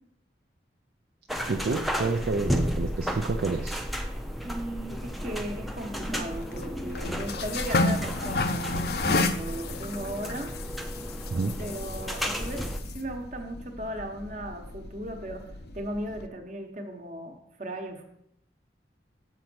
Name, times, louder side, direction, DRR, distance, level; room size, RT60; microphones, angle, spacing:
sound 1, 1.3-12.8, equal, ahead, 0.5 m, -33 dB
voice 1, 1.5-3.8 11.3-11.6, right 3 dB, 60° right, 4 dB, 0.4 m, -29 dB
voice 2, 4.4-10.5 11.6-15.4 15.7-18.0, right 1 dB, 40° right, 4 dB, 1.1 m, -37 dB
sound 2, 5.0-16.3, left 3 dB, 60° left, 0.5 m, -33 dB
7.0 x 5.2 x 6.2 m, 0.77 s
head